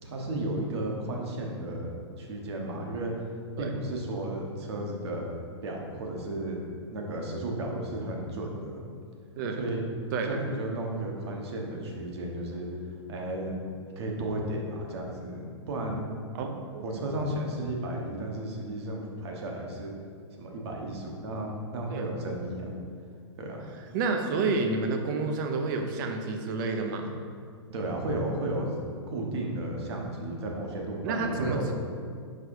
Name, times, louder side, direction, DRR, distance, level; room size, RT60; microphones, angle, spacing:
voice 1, 0.0-3.1 3.6-5.3 5.6-6.6 6.9-8.8 9.6-9.8 10.2-12.7 13.1-13.5 14.0-16.1 16.8-19.9 20.4-22.7 23.4-23.6 27.7-28.7 29.1-31.7, right 1 dB, 60° right, 0 dB, 1.3 m, -33 dB
voice 2, 10.1-10.4 16.3-16.8 21.9-22.1 23.9-27.2 31.0-31.7, right 3 dB, 45° right, 4 dB, 0.7 m, -30 dB
4.9 x 4.8 x 4.8 m, 2.2 s
hypercardioid pair, 140°, 15 cm